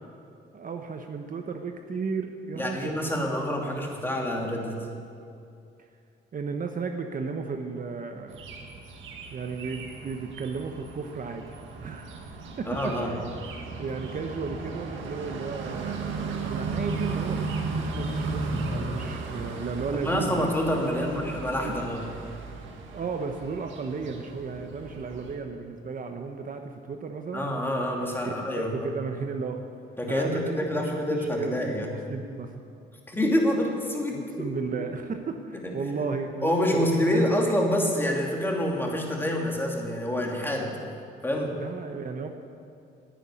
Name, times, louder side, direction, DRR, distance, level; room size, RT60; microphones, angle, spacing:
voice 1, 0.5-3.1 6.3-8.5 9.3-12.2 12.6-12.7 13.0-13.2 13.8-16.1 16.4-20.5 21.6-21.8 22.9-27.5 28.2-29.6 30.1-32.5 34.1-37.3 40.7-40.9 41.5-42.3, right 5 dB, 45° right, 5 dB, 0.9 m, -34 dB
voice 2, 2.6-4.8 12.7-13.1 19.9-22.0 27.3-28.9 30.0-31.9 33.1-34.3 34.8-34.9 35.6-35.7 36.4-40.8 41.2-41.5, left 1 dB, 10° left, -1 dB, 2.7 m, -27 dB
sound 1, 8.3-25.4, right 3 dB, 80° right, 1.7 m, -35 dB
10.5 x 9.3 x 9.6 m, 2.5 s
cardioid pair, 90°, 20 cm